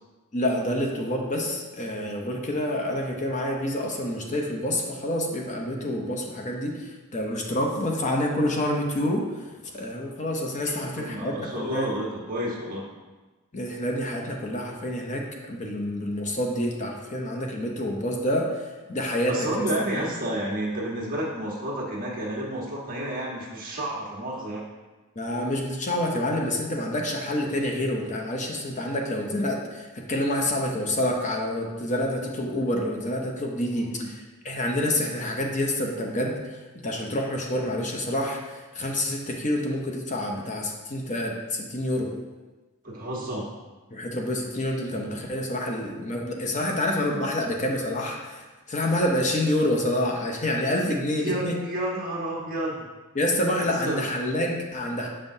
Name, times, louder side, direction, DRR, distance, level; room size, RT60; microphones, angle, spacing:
voice 1, 0.3-9.4 9.7-11.9 13.5-19.7 19.9-20.0 25.2-42.1 43.9-48.4 48.7-51.6 53.1-55.1, left 1 dB, 35° left, 0 dB, 0.7 m, -28 dB
voice 2, 10.6-12.8 19.3-24.6 33.7-34.1 42.8-43.4 51.2-52.8 53.6-54.0, right 1 dB, 40° right, -4 dB, 1.3 m, -31 dB
6.8 x 5.4 x 2.7 m, 1.2 s
head